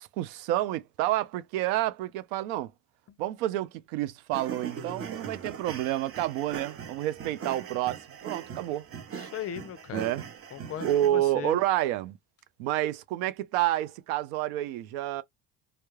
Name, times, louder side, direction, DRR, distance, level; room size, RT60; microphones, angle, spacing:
voice 1, 0.0-2.7 3.2-8.9 9.9-10.2 10.8-12.2 12.6-15.2, right 14 dB, 85° right, 0.5 m, -29 dB
sound 1, 4.3-11.1, right 7 dB, 35° right, 0.7 m, -41 dB
voice 2, 9.1-10.1 10.5-11.6, left 9 dB, 35° left, 0.4 m, -38 dB
2.3 x 2.0 x 3.0 m
supercardioid pair, 95°, 40 cm